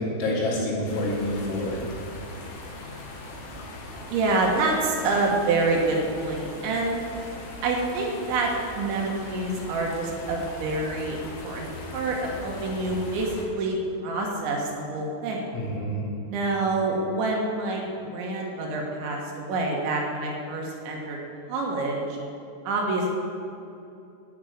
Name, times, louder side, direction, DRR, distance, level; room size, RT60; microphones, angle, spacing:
voice 1, 0.0-1.8 15.5-16.0, left 1 dB, 85° left, -4 dB, 5.1 m, -27 dB
sound 1, 0.9-13.5, left 1 dB, 65° left, 2.6 m, -40 dB
voice 2, 4.1-7.0 7.6-15.6 16.3-21.2 21.5-22.2 22.6-23.1, right 2 dB, 70° right, -1 dB, 3.4 m, -27 dB
12.0 x 6.1 x 8.4 m, 2.7 s
omnidirectional pair, 5.9 m